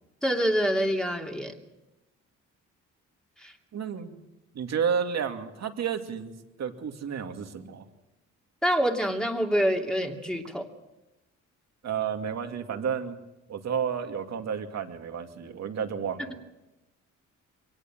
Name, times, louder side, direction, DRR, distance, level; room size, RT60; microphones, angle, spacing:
voice 1, 0.2-1.6 3.4-3.5 8.6-10.7, equal, ahead, 2 dB, 2.8 m, -26 dB
voice 2, 3.7-4.2 4.5-7.9 11.8-13.2 13.5-16.3, right 7 dB, 60° right, 5 dB, 2.5 m, -31 dB
23.5 x 18.5 x 7.5 m, 0.99 s
cardioid pair, 90°, 30 cm